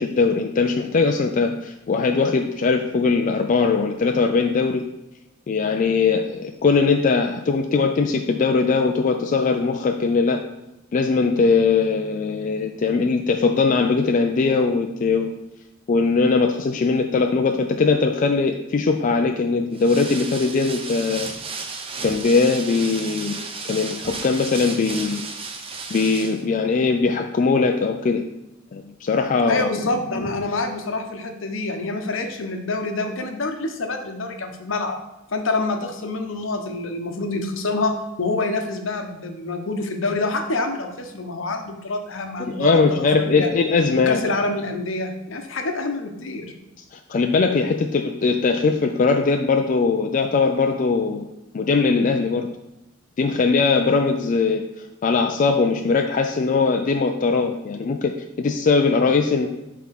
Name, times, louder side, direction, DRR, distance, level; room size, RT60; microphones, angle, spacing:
voice 1, 0.0-4.8 5.5-10.4 10.9-15.3 15.9-21.3 22.0-23.4 23.7-25.2 25.9-28.2 28.7-29.7 42.4-44.2 46.9-51.3 51.5-52.5 53.2-59.5, left 4 dB, 40° left, 4 dB, 0.4 m, -20 dB
sound 1, 19.7-26.4, right 4 dB, 30° right, 0.6 m, -33 dB
voice 2, 29.5-35.0 35.3-37.9 38.2-43.5 43.9-46.5, left 3 dB, 75° left, 4 dB, 0.9 m, -26 dB
5.7 x 3.6 x 5.7 m, 0.97 s
head